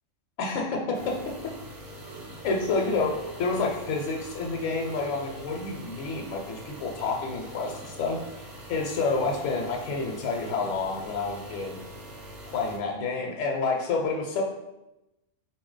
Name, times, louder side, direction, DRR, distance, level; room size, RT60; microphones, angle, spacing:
voice 1, 0.4-1.2 2.4-11.8 12.4-14.4, left 3 dB, 75° left, 0 dB, 0.9 m, -29 dB
sound 1, 0.9-12.8, right 1 dB, 50° right, 0.6 m, -43 dB
4.2 x 2.2 x 3.8 m, 0.94 s
omnidirectional pair, 1.4 m